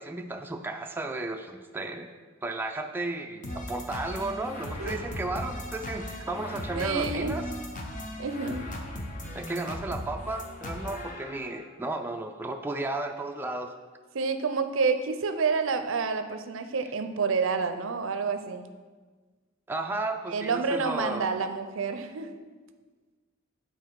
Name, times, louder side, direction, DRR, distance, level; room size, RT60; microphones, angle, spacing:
voice 1, 0.0-2.1 2.4-7.4 9.3-13.7 19.7-21.3, right 2 dB, 10° right, 4 dB, 0.3 m, -34 dB
sound 1, 3.4-11.6, left 1 dB, 40° left, 0.8 m, -37 dB
voice 2, 4.8-5.2 6.7-7.3 8.2-8.7 14.1-18.6 20.3-22.3, right 4 dB, 70° right, 9 dB, 0.5 m, -29 dB
7.8 x 4.5 x 4.6 m, 1.4 s
head